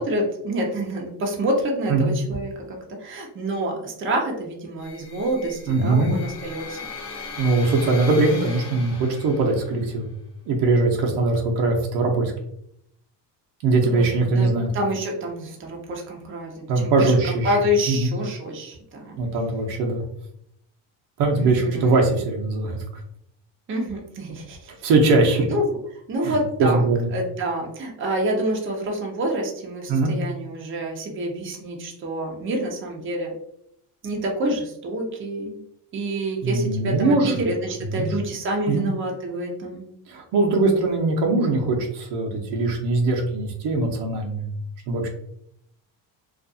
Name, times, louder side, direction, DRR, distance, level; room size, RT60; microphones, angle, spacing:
voice 1, 0.0-6.8 13.9-17.1 17.4-19.2 21.3-22.1 23.7-24.7 25.5-26.8 27.1-33.3 34.0-35.6 35.9-39.8, right 1 dB, 30° right, 0 dB, 0.7 m, -27 dB
sound 1, 4.8-9.8, left 4 dB, 50° left, 0.8 m, -38 dB
voice 2, 5.7-6.1 7.4-10.1 10.5-12.3 13.6-14.7 16.7-17.6 17.9-18.1 19.2-20.0 21.2-22.8 24.8-25.5 26.2-27.1 29.9-30.1 36.4-37.4 37.9-38.1 38.7-38.9 40.1-44.5 44.9-45.1, right 3 dB, 65° right, 1 dB, 0.8 m, -21 dB
2.5 x 2.4 x 2.6 m, 0.72 s
cardioid pair, 105°, 43 cm